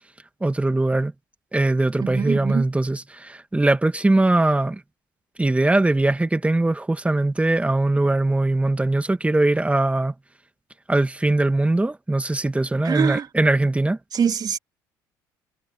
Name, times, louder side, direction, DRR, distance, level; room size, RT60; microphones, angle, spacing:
voice 1, 0.4-1.1 1.5-4.8 5.4-10.1 10.9-14.0, right 2 dB, 15° right, 2.3 m, -21 dB
voice 2, 2.0-2.6 12.8-13.3 14.1-14.6, right 7 dB, 40° right, 2.9 m, -24 dB
hypercardioid pair, 60°, 10 cm